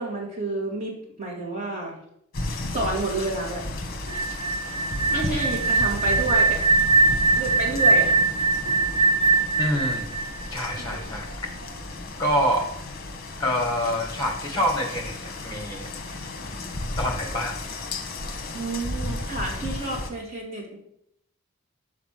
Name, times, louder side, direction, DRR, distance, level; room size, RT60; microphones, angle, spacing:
voice 1, 0.0-1.9 2.7-3.6 5.1-6.6 7.3-8.1 18.5-20.8, right 2 dB, 30° right, -4 dB, 2.4 m, -30 dB
sound 1, 2.3-20.1, left 2 dB, 45° left, 1.0 m, -34 dB
sound 2, 4.1-11.0, right 4 dB, 85° right, 1.1 m, -21 dB
voice 2, 9.6-10.1 10.5-11.3 12.2-12.6 13.4-15.9 17.0-17.6, equal, 20° left, 2 dB, 1.6 m, -26 dB
5.9 x 5.1 x 6.0 m, 0.73 s
head